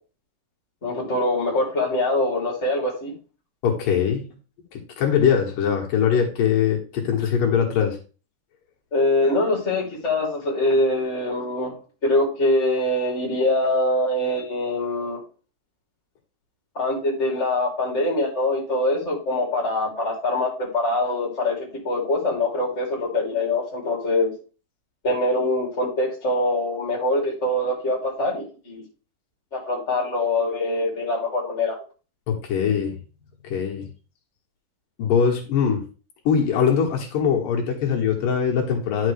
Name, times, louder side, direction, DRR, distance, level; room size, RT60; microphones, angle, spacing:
voice 1, 0.8-3.1 8.9-11.8 12.0-15.2 16.7-24.3 25.0-28.8 29.5-31.8, left 2 dB, 20° left, -3 dB, 2.9 m, -23 dB
voice 2, 3.6-4.3 4.7-8.0 32.3-33.0 33.4-33.9 35.0-35.8 36.3-39.1, left 7 dB, 80° left, 0 dB, 3.1 m, -22 dB
10.0 x 5.9 x 3.3 m, 0.34 s
omnidirectional pair, 3.9 m